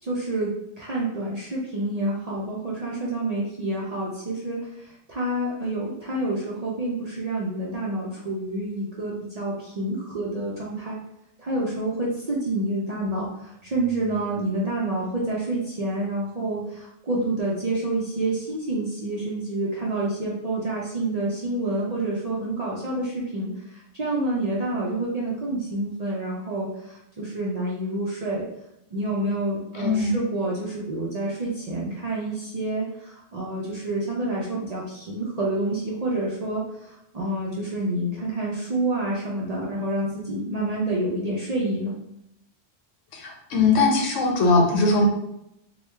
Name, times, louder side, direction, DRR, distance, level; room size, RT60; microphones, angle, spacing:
voice 1, 0.0-11.0 11.4-28.4 28.9-41.9, right 2 dB, 50° right, -5 dB, 0.4 m, -28 dB
voice 2, 29.8-30.1 43.1-45.1, left 3 dB, 80° left, 2 dB, 1.0 m, -20 dB
3.0 x 2.3 x 3.2 m, 0.83 s
omnidirectional pair, 1.3 m